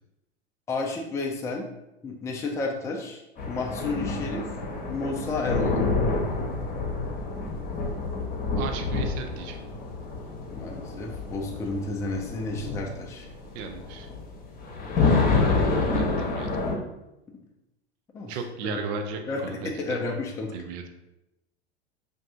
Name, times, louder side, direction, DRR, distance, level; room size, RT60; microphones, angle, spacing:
voice 1, 0.7-1.7 2.0-4.5 4.9-5.9 10.5-13.3 18.1-18.4 18.6-18.8 19.3-20.5, left 3 dB, 10° left, 0 dB, 0.4 m, -31 dB
sound 1, 3.4-16.7, left 3 dB, 25° left, 1.0 m, -28 dB
voice 2, 8.6-9.6 13.5-14.1 15.8-16.5 18.3-20.2 20.5-20.8, right 4 dB, 40° right, 5 dB, 0.5 m, -35 dB
5.3 x 2.6 x 2.4 m, 0.94 s
figure-of-eight pair, 85°, 33 cm